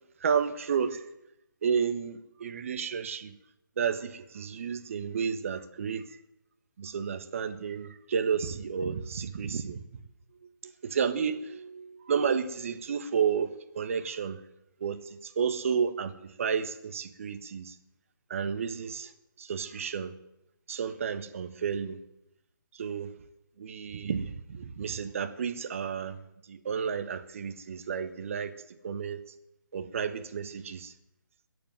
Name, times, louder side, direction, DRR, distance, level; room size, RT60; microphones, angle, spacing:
voice 1, 0.2-1.1 1.6-3.3 3.8-6.2 6.8-9.8 10.6-14.4 14.8-17.8 18.3-19.1 19.4-20.1 20.7-22.0 22.7-23.1 23.6-26.2 26.5-29.2 29.7-30.9, right 6 dB, 40° right, 10 dB, 1.4 m, -31 dB
22.0 x 8.6 x 7.7 m, 0.86 s
figure-of-eight pair, 145°, 11 cm